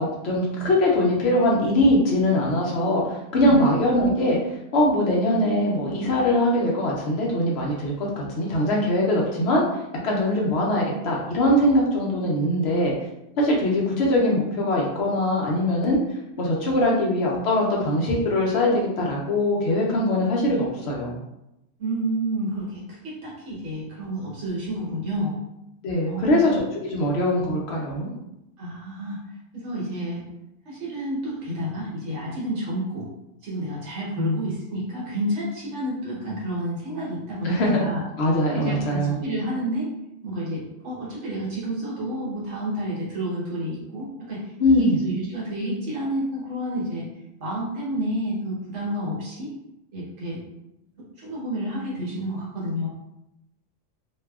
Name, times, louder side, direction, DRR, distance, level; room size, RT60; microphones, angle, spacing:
voice 1, 0.0-4.4 4.7-9.6 10.0-12.9 13.4-16.0 16.4-21.2 25.8-28.1 34.2-34.4 37.4-37.8 38.2-39.2 44.6-45.0, left 1 dB, 65° left, -3 dB, 0.8 m, -22 dB
voice 2, 3.3-3.7 21.8-25.4 26.1-26.5 27.0-27.1 28.6-29.2 29.5-30.2 30.6-33.1 33.4-38.0 38.5-39.9 40.2-47.1 47.4-49.5 49.9-50.4 51.2-52.9, equal, 75° right, -6 dB, 1.2 m, -30 dB
2.6 x 2.2 x 2.2 m, 0.88 s
omnidirectional pair, 1.3 m